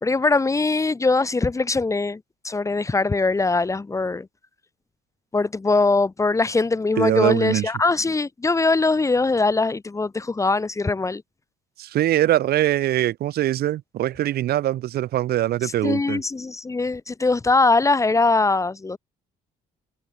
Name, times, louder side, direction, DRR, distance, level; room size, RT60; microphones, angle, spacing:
voice 1, 0.0-2.2 2.4-4.3 5.3-11.2 15.8-19.0, left 3 dB, 20° left, 1.7 m, -21 dB
voice 2, 7.0-7.7 11.8-16.2, right 13 dB, 70° right, 3.2 m, -22 dB
cardioid pair, 110°, 17 cm